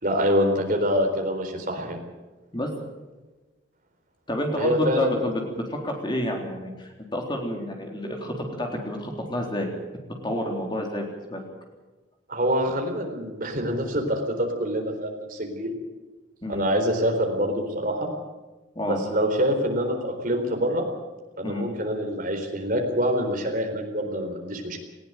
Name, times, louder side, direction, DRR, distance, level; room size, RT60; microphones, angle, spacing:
voice 1, 0.0-2.0 4.6-5.3 12.3-15.7 16.5-18.1 18.8-20.9 21.4-24.8, equal, 45° right, 3 dB, 4.1 m, -25 dB
voice 2, 4.3-11.4 16.4-16.6 18.8-19.0 21.4-21.6, left 1 dB, 25° left, 1 dB, 3.8 m, -29 dB
19.5 x 16.5 x 9.3 m, 1.2 s
head